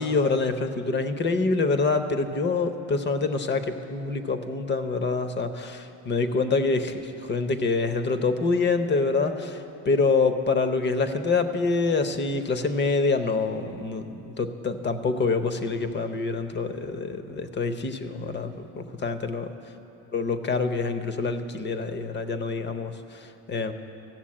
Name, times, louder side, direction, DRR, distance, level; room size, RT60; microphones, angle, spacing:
voice 1, 0.0-19.5 20.1-23.7, left 4 dB, 25° left, 9 dB, 0.7 m, -26 dB
15.0 x 6.9 x 8.6 m, 3.0 s
cardioid pair, 125°, 41 cm